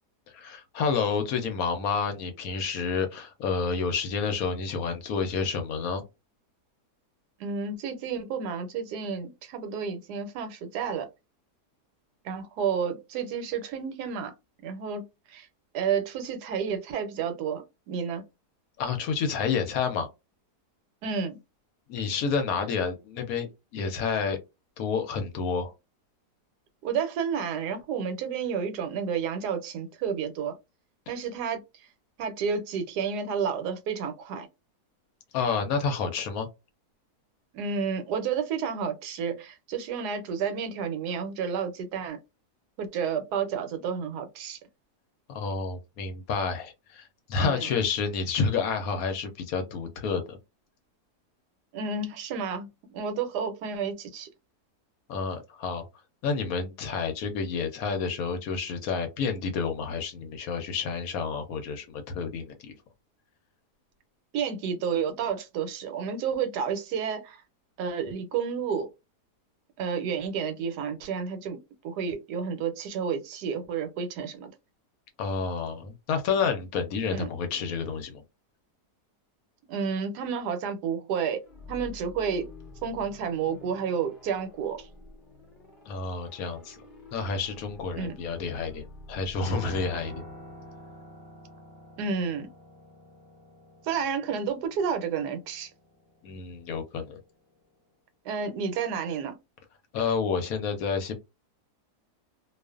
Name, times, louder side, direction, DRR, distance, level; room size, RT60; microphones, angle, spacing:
voice 1, 0.3-6.0 18.8-20.1 21.9-24.4 24.8-25.7 35.3-36.5 45.3-50.4 55.1-55.8 56.2-62.8 75.2-78.2 85.9-86.8 87.1-90.2 96.2-97.2 99.9-101.1, left 5 dB, 70° left, 0.9 m, -29 dB
voice 2, 7.4-11.1 12.2-14.3 14.6-15.5 15.7-18.2 21.0-21.4 26.8-30.5 31.1-31.6 32.2-34.5 37.5-42.2 42.8-44.6 47.4-47.7 51.7-54.3 64.3-67.4 67.8-68.9 69.8-71.6 71.8-74.5 77.1-77.3 79.7-81.4 81.7-82.5 82.8-84.9 87.9-88.2 92.0-92.5 93.8-95.7 98.2-99.3, right 6 dB, 80° right, 1.1 m, -31 dB
sound 1, 81.4-91.1, left 3 dB, 55° left, 0.5 m, -48 dB
Piano, 89.4-97.7, equal, 20° left, 0.7 m, -48 dB
2.4 x 2.4 x 2.3 m
omnidirectional pair, 1.7 m